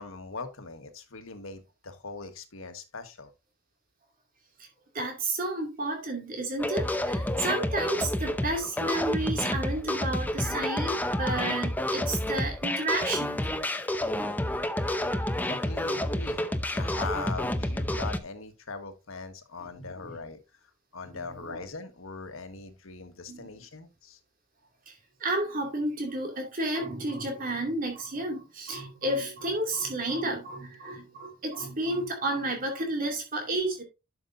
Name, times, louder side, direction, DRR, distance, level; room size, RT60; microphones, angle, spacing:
voice 1, 0.0-3.3 15.4-20.4 20.9-24.2, left 3 dB, 85° left, 1.4 m, -40 dB
voice 2, 4.9-13.7 19.8-20.1 21.4-21.5 23.3-23.5 25.2-33.8, right 2 dB, 45° right, 2.5 m, -31 dB
sound 1, 6.6-18.2, left 1 dB, 10° left, 0.7 m, -29 dB
12.0 x 6.1 x 2.6 m
head